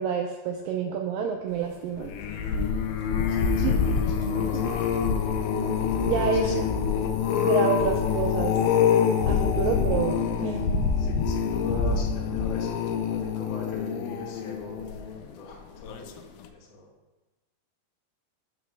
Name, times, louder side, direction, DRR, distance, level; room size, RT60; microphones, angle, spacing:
voice 1, 0.0-2.1 3.6-3.8 4.5-4.6 6.0-6.6 7.5-8.5 9.3-10.6, right 7 dB, 85° right, 2 dB, 2.0 m, -28 dB
sound 1, 2.0-15.3 15.9-16.2 16.4-16.5, left 6 dB, 80° left, 2.1 m, -26 dB
voice 2, 3.3-4.7 6.2-6.7 9.2-9.4 11.0-16.2 16.5-16.9, left 3 dB, 65° left, -2 dB, 1.6 m, -40 dB
8.2 x 3.0 x 6.2 m, 1.1 s
omnidirectional pair, 4.5 m